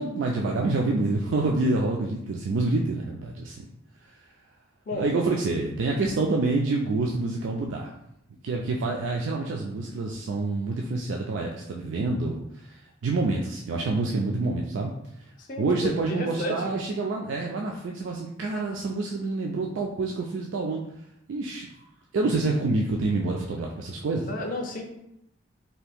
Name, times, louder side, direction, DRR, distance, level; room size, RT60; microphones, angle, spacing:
voice 1, 0.0-3.7 4.0-4.1 4.9-7.9 8.4-14.9 15.6-20.8 21.3-21.7 22.1-24.3, right 3 dB, 85° right, 0 dB, 0.4 m, -27 dB
voice 2, 15.4-16.6 22.1-22.2 24.3-24.8, left 1 dB, 45° left, 2 dB, 0.5 m, -32 dB
2.8 x 2.5 x 3.4 m, 0.78 s
head